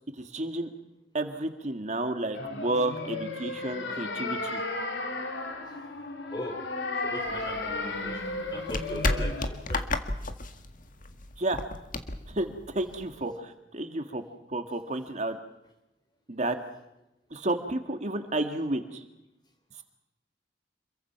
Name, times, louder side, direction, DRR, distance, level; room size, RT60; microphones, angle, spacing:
voice 1, 0.2-0.7 1.1-4.6 11.4-11.6 12.3-14.2 14.5-15.4 16.3-16.6 17.3-19.0, right 2 dB, 40° right, 6 dB, 1.8 m, -31 dB
sound 1, 2.3-9.5, left 2 dB, 90° left, 3.6 m, -34 dB
voice 2, 7.0-9.9, left 1 dB, 25° left, 4 dB, 4.8 m, -39 dB
sound 2, 7.2-13.2, left 2 dB, 50° left, 1.8 m, -33 dB
27.5 x 22.5 x 5.9 m, 0.91 s
head